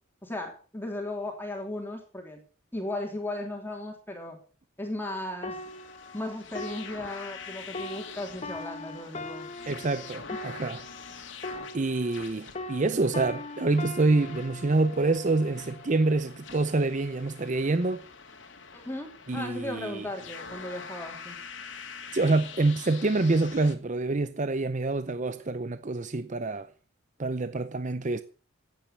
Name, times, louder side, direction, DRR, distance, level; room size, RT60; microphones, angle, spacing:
voice 1, 0.2-2.4 2.7-4.4 4.8-5.6 6.1-9.5 18.7-21.4, left 1 dB, 10° left, 3.2 m, -36 dB
sound 1, 5.4-12.3 12.5-16.1 16.8-17.0, left 2 dB, 35° left, 1.2 m, -41 dB
sound 2, 5.5-23.7, left 6 dB, 65° left, 2.6 m, -45 dB
voice 2, 9.7-10.8 11.7-18.0 19.3-20.1 22.1-26.7 27.2-28.2, right 3 dB, 40° right, 0.6 m, -26 dB
16.0 x 9.1 x 6.9 m
head